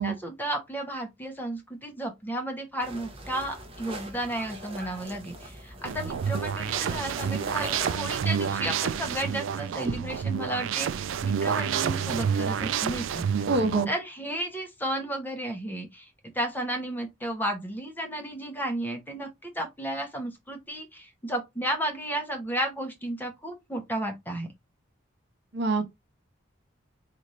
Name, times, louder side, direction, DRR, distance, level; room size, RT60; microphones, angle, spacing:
voice 1, 0.0-13.2 13.9-16.1 16.3-24.5, right 1 dB, 10° left, 0.8 m, -33 dB
sound 1, 2.8-7.9, right 1 dB, 30° right, 0.8 m, -41 dB
sound 2, 5.8-13.8, right 7 dB, 75° right, 0.3 m, -29 dB
voice 2, 13.5-13.9 25.5-25.8, right 3 dB, 55° right, 1.0 m, -25 dB
4.0 x 2.5 x 3.1 m
head